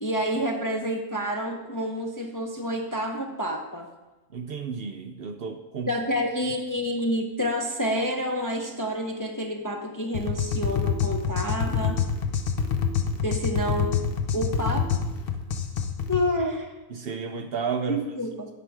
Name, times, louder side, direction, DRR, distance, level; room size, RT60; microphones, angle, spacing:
voice 1, 0.0-3.9 5.9-12.0 13.2-14.0 14.3-15.0 16.1-16.7 17.9-18.5, equal, 20° left, 1 dB, 0.5 m, -28 dB
voice 2, 4.3-5.9 16.9-18.0, right 5 dB, 60° right, 6 dB, 0.7 m, -32 dB
sound 1, 10.1-16.2, left 6 dB, 55° left, 0.8 m, -27 dB
9.8 x 6.0 x 4.7 m, 1.1 s
omnidirectional pair, 1.3 m